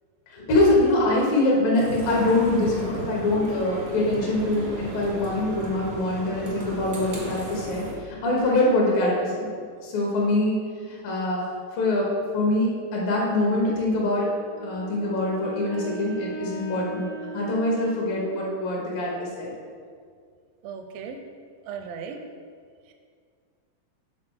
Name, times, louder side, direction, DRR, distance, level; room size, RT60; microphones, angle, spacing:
voice 1, 0.3-7.8 8.2-9.5 9.8-10.5 10.9-11.4 11.8-12.1 12.3-14.3 14.6-17.1 17.3-19.5, left 2 dB, 75° left, -3 dB, 3.0 m, -24 dB
sound 1, 1.7-7.9, right 1 dB, 65° right, 0.8 m, -35 dB
Wind instrument woodwind instrument, 14.3-18.6, right 3 dB, 50° left, 0.8 m, -38 dB
voice 2, 20.6-21.2 21.7-22.2 22.9-23.0, right 6 dB, 85° right, 5 dB, 2.2 m, -36 dB
7.7 x 4.0 x 6.3 m, 2.1 s
omnidirectional pair, 4.0 m